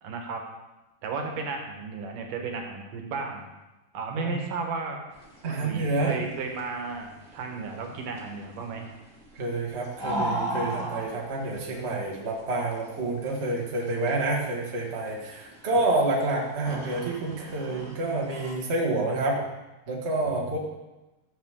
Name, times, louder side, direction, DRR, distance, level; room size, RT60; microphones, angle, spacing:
voice 1, 0.0-0.4 1.0-3.5 3.9-5.0 5.5-8.9 20.2-20.6, right 4 dB, 65° right, 2 dB, 2.5 m, -34 dB
sound 1, 5.1-18.5, right 1 dB, 20° right, 1.3 m, -38 dB
voice 2, 5.4-6.2 9.3-19.4 19.9-20.6, right 2 dB, 90° right, -3 dB, 0.5 m, -28 dB
15.0 x 7.1 x 3.6 m, 1.0 s
omnidirectional pair, 4.5 m